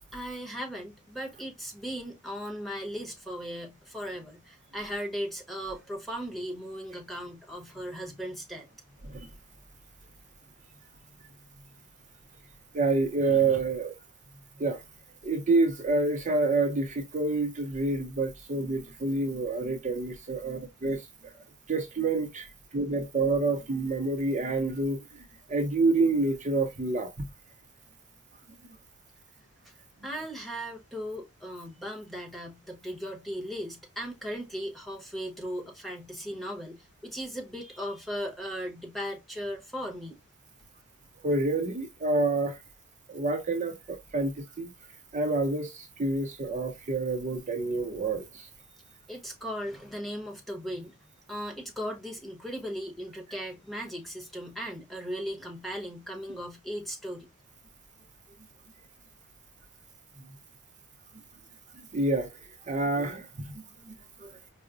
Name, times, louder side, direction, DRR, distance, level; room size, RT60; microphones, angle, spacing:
voice 1, 0.1-8.7 29.6-29.7 30.0-40.2 49.1-51.0 51.3-57.3, equal, ahead, 0.9 m, -37 dB
voice 2, 12.7-13.9 14.6-14.8 15.2-21.1 21.7-27.3 41.2-42.6 43.1-44.7 45.1-48.5 61.9-62.3 62.7-63.3 63.5-63.9 64.2-64.3, right 3 dB, 35° right, 0.5 m, -28 dB
4.8 x 2.0 x 2.3 m
head